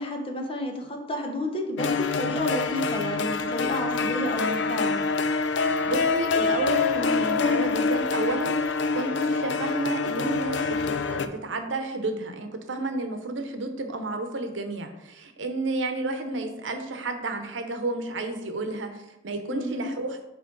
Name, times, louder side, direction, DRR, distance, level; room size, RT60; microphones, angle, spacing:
voice 1, 0.0-5.0 19.5-19.9, left 1 dB, 30° left, 2 dB, 0.8 m, -31 dB
sound 1, 1.8-11.3, left 4 dB, 70° left, 0.4 m, -26 dB
voice 2, 5.9-20.2, right 2 dB, 85° right, 6 dB, 0.8 m, -31 dB
8.6 x 3.1 x 3.9 m, 0.93 s
head